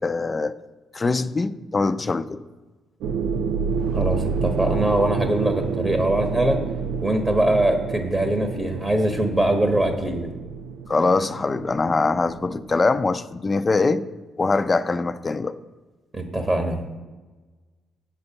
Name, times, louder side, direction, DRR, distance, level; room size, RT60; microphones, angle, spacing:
voice 1, 0.0-0.5 0.9-2.4 10.9-14.0 14.4-15.6, left 3 dB, 25° left, 12 dB, 0.5 m, -23 dB
sound 1, 3.0-12.8, right 5 dB, 85° right, 0.4 m, -29 dB
voice 2, 3.9-6.6 7.0-10.3 16.1-16.8, right 1 dB, 25° right, 5 dB, 1.4 m, -22 dB
8.3 x 6.6 x 7.0 m, 1.2 s
cardioid pair, 90°, 0 cm